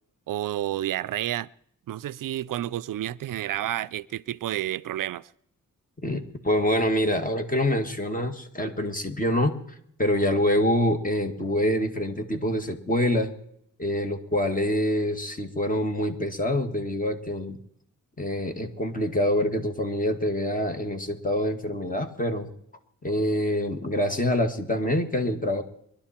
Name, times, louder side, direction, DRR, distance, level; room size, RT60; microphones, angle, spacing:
voice 1, 0.3-1.5 1.9-5.3, right 13 dB, 85° right, 0.5 m, -30 dB
voice 2, 6.0-9.6 10.0-13.3 13.8-17.6 18.2-22.5 23.0-25.6, left 1 dB, 25° left, 1.9 m, -26 dB
23.0 x 12.0 x 4.4 m
cardioid pair, 75°, 32 cm